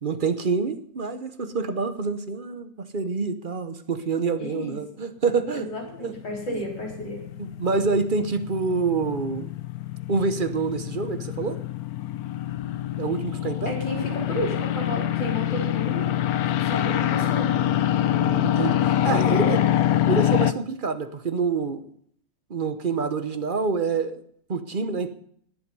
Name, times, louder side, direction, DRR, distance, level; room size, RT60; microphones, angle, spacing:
voice 1, 0.0-5.7 6.0-6.1 6.5-6.6 7.6-9.5 10.1-11.6 13.0-13.7 18.2-19.6 20.1-21.8 22.5-24.2 24.5-25.1, right 4 dB, 40° right, 9 dB, 0.8 m, -27 dB
voice 2, 4.4-4.8 5.5-7.2 13.7-16.1 16.6-17.6 19.0-19.7, left 1 dB, 85° left, -1 dB, 4.8 m, -32 dB
sound 1, 5.9-20.5, left 11 dB, 65° left, 1.0 m, -25 dB
19.5 x 7.7 x 5.4 m, 0.63 s
omnidirectional pair, 1.9 m